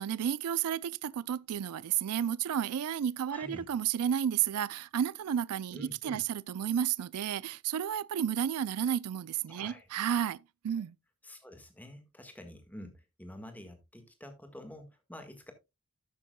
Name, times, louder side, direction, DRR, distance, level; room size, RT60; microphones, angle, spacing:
voice 1, 0.0-11.0, right 9 dB, 90° right, 0.4 m, -32 dB
voice 2, 3.3-3.6 5.7-6.2 9.5-9.9 11.2-15.5, left 1 dB, 5° left, 1.6 m, -48 dB
12.0 x 8.5 x 2.2 m
head